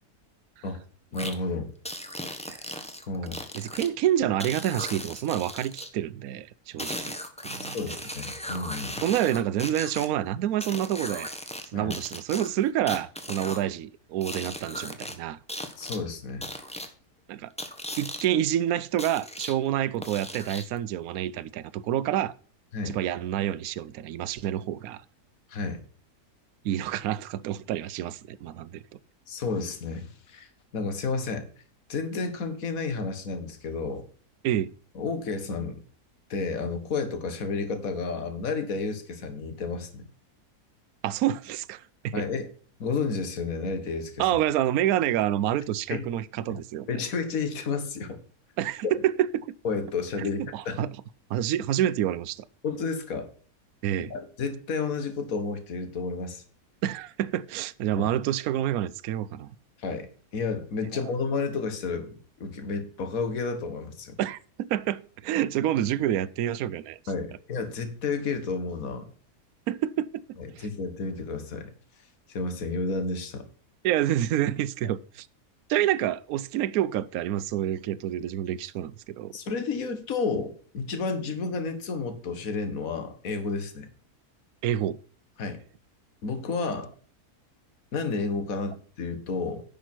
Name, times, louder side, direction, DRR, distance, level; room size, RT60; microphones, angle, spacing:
voice 1, 1.1-1.7 3.1-3.4 7.7-9.0 11.7-11.9 15.8-16.5 22.7-23.0 25.5-25.8 29.3-31.5 31.9-34.0 35.0-35.8 36.3-40.1 42.1-42.5 42.8-44.3 45.9-46.1 46.9-48.2 49.6-50.9 52.6-53.3 54.1-56.4 58.0-58.1 59.8-60.1 60.3-62.1 62.4-64.2 67.1-69.1 70.4-71.7 72.3-73.5 79.3-83.9 85.4-85.6 86.2-86.9 87.9-89.6, left 4 dB, 60° left, 1.9 m, -31 dB
sound 1, 1.1-1.3 1.9-3.9 4.4-5.9 6.8-10.1 10.6-11.7 11.9-13.6 14.2-15.1 15.5-16.0 16.4-16.9 17.6-18.3 19.0-19.5 20.0-20.8, equal, 5° left, 1.0 m, -37 dB
voice 2, 3.5-7.1 7.4-7.8 9.0-11.3 11.7-15.4 17.3-17.5 18.0-22.4 22.8-25.0 26.6-28.8 34.4-34.7 41.0-42.2 44.2-47.0 48.6-49.5 50.2-50.9 51.3-52.4 53.8-54.1 56.8-59.5 64.2-67.0 69.7-70.7 73.8-75.3 75.7-79.4 84.6-85.0, right 11 dB, 70° right, 1.0 m, -28 dB
10.5 x 6.2 x 4.4 m
omnidirectional pair, 1.7 m